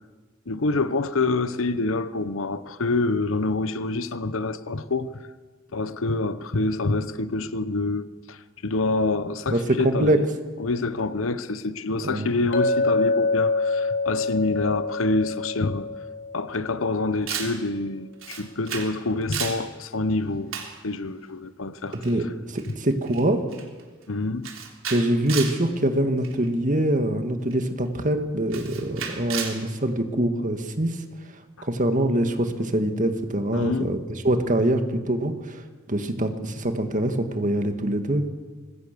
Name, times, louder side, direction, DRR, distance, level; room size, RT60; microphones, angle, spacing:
voice 1, 0.5-5.2 5.7-10.2 10.6-15.9 16.3-22.0 24.1-24.5 31.6-31.7 33.5-33.9, left 3 dB, 80° left, 1.0 m, -26 dB
voice 2, 9.5-10.2 12.0-12.3 21.9-23.4 24.9-31.0 31.6-34.0 34.2-35.6 35.9-38.3, right 1 dB, 40° right, 2.0 m, -24 dB
Chink clink, 12.5-16.7, left 3 dB, 65° left, 4.4 m, -26 dB
Camera, 17.3-17.6 18.2-18.9 19.2-19.6 20.5-20.8 21.9-22.1 22.6-22.7 23.1-23.2 23.5-23.8 24.4-25.6 26.2-26.5 27.5-27.6 28.5-29.6, right 7 dB, 80° right, 3.6 m, -33 dB
25.5 x 20.5 x 6.9 m
head